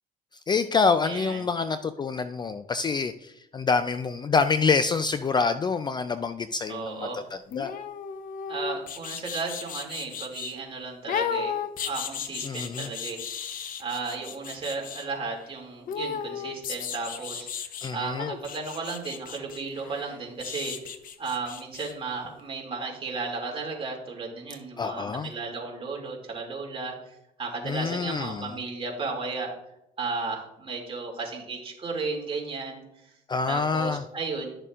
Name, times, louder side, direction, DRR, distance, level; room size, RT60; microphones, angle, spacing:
voice 1, 0.5-7.7 12.4-12.9 17.8-18.3 24.8-25.3 27.7-28.5 33.3-34.0, left 5 dB, 25° left, 10 dB, 0.4 m, -26 dB
voice 2, 1.0-1.5 6.7-7.2 8.5-11.6 11.8-13.2 13.8-17.6 17.9-20.9 21.2-29.5 30.0-33.1 33.5-34.6, right 4 dB, 30° right, 0 dB, 2.5 m, -34 dB
sound 1, 7.5-10.5 11.1-15.1 15.9-17.9 18.2-21.9 22.2-22.3, left 7 dB, 55° left, 0.8 m, -35 dB
12.0 x 6.7 x 2.5 m, 0.82 s
cardioid pair, 110°, 17 cm